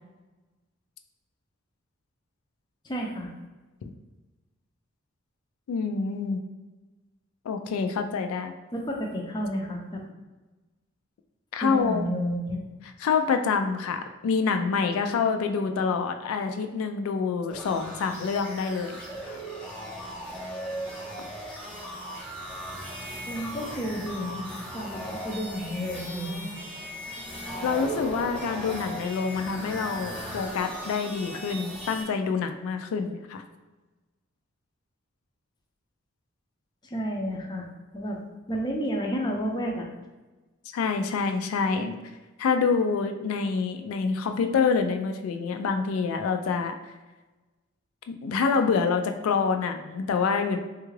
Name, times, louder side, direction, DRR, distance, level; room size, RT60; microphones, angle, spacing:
voice 1, 2.8-3.3 8.7-10.0 11.6-12.6 23.3-26.5 36.8-37.7 37.9-38.2 38.5-39.9, equal, 20° left, 0 dB, 0.4 m, -31 dB
voice 2, 5.7-6.4 7.5-8.5 11.5-12.1 13.0-19.4 27.6-33.4 40.7-41.9 42.4-46.7 48.1-50.6, left 5 dB, 90° left, 8 dB, 0.3 m, -27 dB
sound 1, 17.5-32.0, right 1 dB, 5° left, 0.8 m, -37 dB
3.5 x 2.3 x 3.1 m, 1.2 s
head